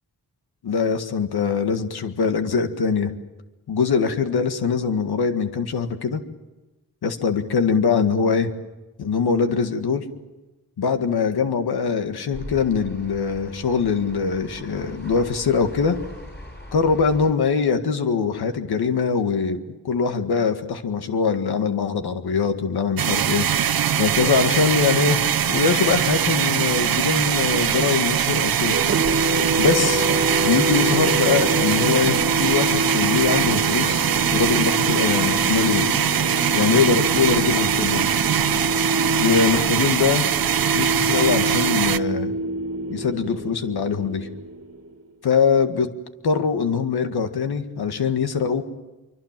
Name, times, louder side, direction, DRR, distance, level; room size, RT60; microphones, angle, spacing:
voice 1, 0.6-3.1 3.7-6.2 7.0-8.5 9.0-10.0 10.8-16.0 16.7-23.5 24.0-25.2 25.5-28.8 29.6-30.1 30.4-35.9 36.5-38.1 39.2-40.3 40.7-42.3 42.9-44.3 45.2-45.9 46.2-48.6, left 5 dB, 85° left, 7 dB, 1.9 m, -22 dB
sound 1, 12.3-17.3, left 1 dB, 25° left, 7.1 m, -40 dB
sound 2, 23.0-42.0, right 9 dB, 70° right, 0.9 m, -22 dB
sound 3, 28.7-45.0, equal, 40° right, 1.9 m, -27 dB
26.0 x 24.5 x 7.5 m, 1.1 s
cardioid pair, 85°, 37 cm